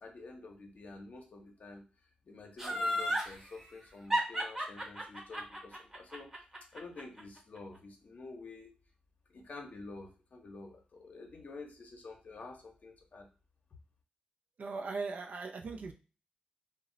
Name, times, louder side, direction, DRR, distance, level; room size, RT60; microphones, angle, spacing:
voice 1, 0.0-1.8 2.3-6.4 6.7-8.7 9.3-13.3, left 3 dB, 60° left, 3 dB, 0.7 m, -49 dB
Laughter, 2.6-3.3 4.1-7.2 7.6-7.7, equal, 15° right, 0.8 m, -32 dB
voice 2, 14.6-15.9, right 4 dB, 60° right, 3 dB, 0.3 m, -39 dB
2.0 x 2.0 x 3.6 m, 0.34 s
cardioid pair, 80°, 3 cm